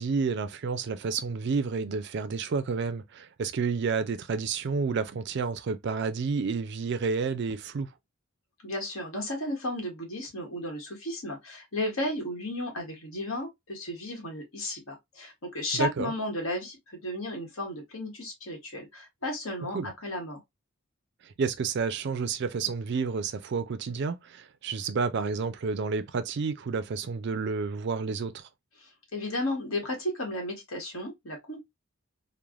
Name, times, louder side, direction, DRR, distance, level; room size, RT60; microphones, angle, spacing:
voice 1, 0.0-7.9 15.7-16.1 19.7-19.9 21.2-28.5, right 5 dB, 55° right, 0.4 m, -30 dB
voice 2, 8.6-20.4 29.1-31.6, left 1 dB, 65° left, 1.2 m, -34 dB
3.1 x 2.1 x 2.3 m
head